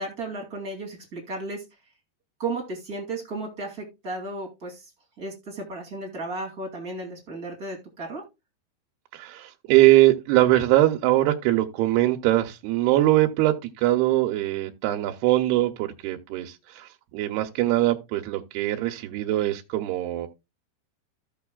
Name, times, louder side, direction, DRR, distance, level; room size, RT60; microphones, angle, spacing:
voice 1, 0.0-1.6 2.4-4.9 5.2-8.2, right 2 dB, 30° right, 2.2 m, -34 dB
voice 2, 9.1-20.3, right 15 dB, 80° right, 2.7 m, -22 dB
14.5 x 6.5 x 2.3 m
omnidirectional pair, 4.6 m